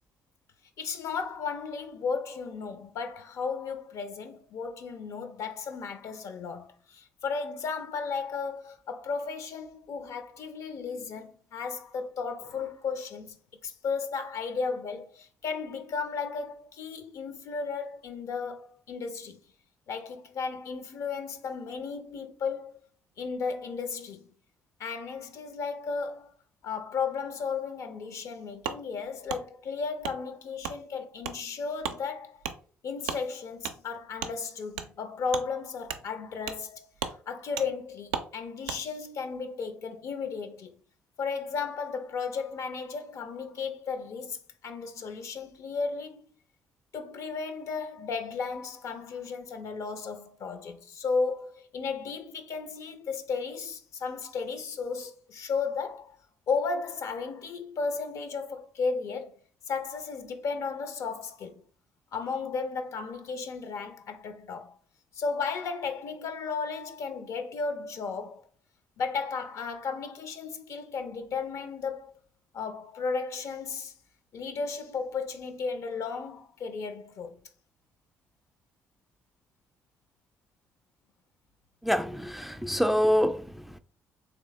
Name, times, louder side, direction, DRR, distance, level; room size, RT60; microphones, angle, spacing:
voice 1, 0.8-13.4 13.6-19.4 19.9-22.8 23.2-24.3 24.8-26.3 26.6-32.4 32.8-40.7 41.2-44.4 44.6-46.2 46.9-56.2 56.5-59.4 59.7-61.6 62.1-64.8 65.1-68.5 69.0-72.1 72.5-74.0 74.3-77.4, left 5 dB, 60° left, 0.6 m, -34 dB
Wood, 28.6-28.8 29.3-29.4 30.0-30.2 30.6-30.8 31.2-31.4 31.8-32.0 32.4-32.6 33.0-33.2 33.6-33.8 34.2-34.3 34.7-34.9 35.3-35.4 35.9-36.0 36.5-36.6 37.0-37.2 37.6-37.7 38.1-38.3 38.6-38.8, right 8 dB, 75° right, 0.4 m, -34 dB
voice 2, 81.8-83.8, equal, 5° right, 0.4 m, -26 dB
3.3 x 2.9 x 3.2 m
hypercardioid pair, 50°, 6 cm